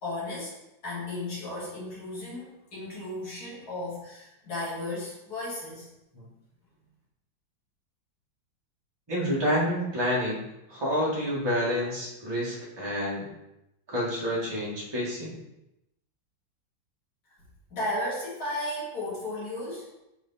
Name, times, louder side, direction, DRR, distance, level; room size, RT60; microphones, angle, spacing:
voice 1, 0.0-0.6 0.8-5.9 17.7-19.9, left 1 dB, 50° left, -8 dB, 2.7 m, -34 dB
voice 2, 9.1-13.3 13.9-15.4, equal, 15° right, -6 dB, 1.6 m, -29 dB
4.9 x 4.7 x 4.2 m, 0.88 s
omnidirectional pair, 2.1 m